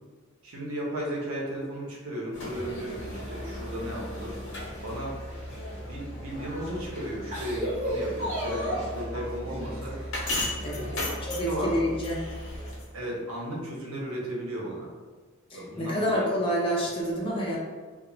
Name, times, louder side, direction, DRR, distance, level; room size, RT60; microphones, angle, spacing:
voice 1, 0.4-4.4 4.8-5.2 5.7-10.0 10.7-11.1 11.5-11.9 12.9-14.9 15.5-16.3, equal, 85° right, -3 dB, 0.7 m, -35 dB
sound 1, 2.3-12.9, left 2 dB, 65° left, 0.8 m, -38 dB
sound 2, 2.4-4.2 4.6-6.0 6.6-6.7 7.1-9.0 9.6-10.3 10.8-11.6 11.9-12.0 13.2-13.3, equal, 40° right, 0.7 m, -35 dB
Musical instrument, 2.9-13.0, equal, 10° left, 0.9 m, -40 dB
voice 2, 11.3-12.2 15.5-17.6, equal, 25° left, -4 dB, 0.5 m, -28 dB
2.4 x 2.1 x 3.0 m, 1.4 s
head